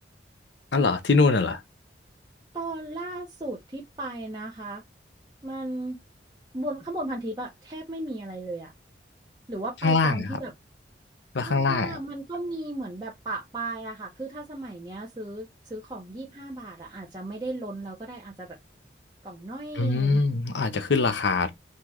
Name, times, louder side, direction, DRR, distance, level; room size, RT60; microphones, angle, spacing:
voice 1, 0.7-1.6 9.8-10.4 11.3-12.0 19.8-21.5, left 3 dB, 75° left, 0.7 m, -23 dB
voice 2, 2.5-4.8 5.4-6.0 6.5-8.7 9.5-10.5 11.4-18.6 19.2-20.2, right 2 dB, 20° right, 0.7 m, -35 dB
3.0 x 2.7 x 3.5 m
head